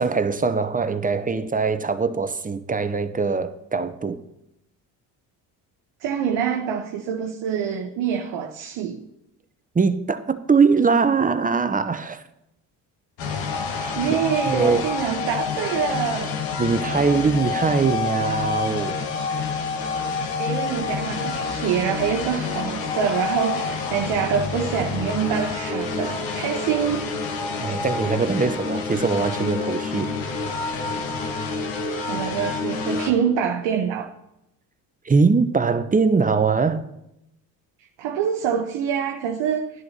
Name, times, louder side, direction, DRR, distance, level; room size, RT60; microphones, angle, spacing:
voice 1, 0.0-4.2 9.7-12.2 13.8-14.0 14.5-14.8 16.6-19.0 27.6-30.3 35.0-36.8, right 4 dB, 15° right, 0.7 m, -22 dB
voice 2, 6.0-9.1 13.9-16.3 20.4-27.1 32.1-34.1 38.0-39.8, right 8 dB, 60° right, 0.9 m, -25 dB
sound 1, 13.2-33.1, left 4 dB, 60° left, 1.6 m, -28 dB
12.5 x 10.5 x 2.8 m
hypercardioid pair, 60°, 49 cm